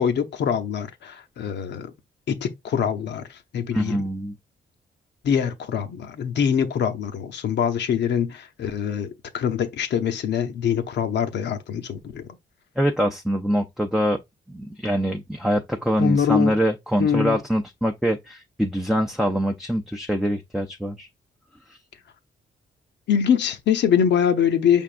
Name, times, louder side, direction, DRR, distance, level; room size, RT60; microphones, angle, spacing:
voice 1, 0.0-1.9 2.3-3.2 3.5-4.0 5.2-12.2 16.0-16.5 17.0-17.4 23.1-24.8, left 8 dB, 75° left, 0.8 m, -23 dB
voice 2, 3.7-4.3 12.8-14.2 14.5-21.1, equal, ahead, 0.5 m, -24 dB
5.7 x 3.5 x 2.5 m
cardioid pair, 115°, 18 cm